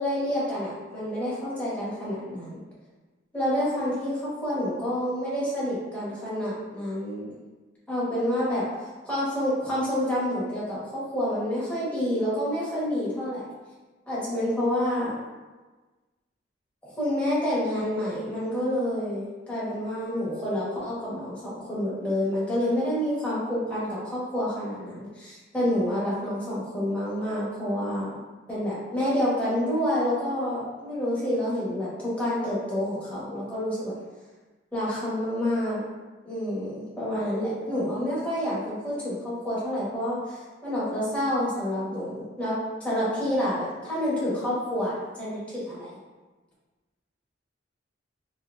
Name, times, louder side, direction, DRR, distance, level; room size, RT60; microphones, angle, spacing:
voice 1, 0.0-2.6 3.3-7.3 7.9-13.4 14.1-15.2 16.8-28.1 28.5-33.9 34.7-35.8 36.2-42.5 42.8-44.9 45.2-45.9, left 1 dB, 5° left, -9 dB, 1.0 m, -28 dB
3.4 x 2.7 x 2.4 m, 1.3 s
head